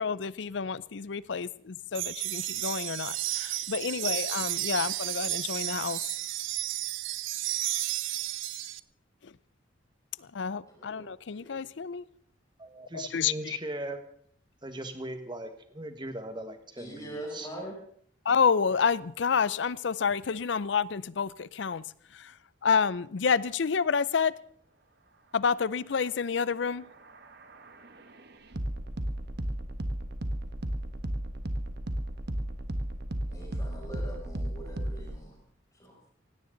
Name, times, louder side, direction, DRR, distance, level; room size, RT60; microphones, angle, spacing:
voice 1, 0.0-6.1 9.2-9.3 10.2-12.0 12.9-13.6 18.2-21.8 22.1-22.3 22.6-24.3 25.3-26.9, left 6 dB, 65° left, 0.5 m, -29 dB
sound 1, 1.9-8.8, right 16 dB, 80° right, 0.5 m, -32 dB
voice 2, 10.7-11.5 16.8-17.8 33.3-35.4 35.8-36.0, right 1 dB, 20° left, 6.7 m, -43 dB
voice 3, 12.6-14.0 14.6-17.5, right 1 dB, 25° right, 1.6 m, -39 dB
sound 2, 26.5-35.2, right 1 dB, 55° right, 1.4 m, -35 dB
17.5 x 17.0 x 3.9 m
head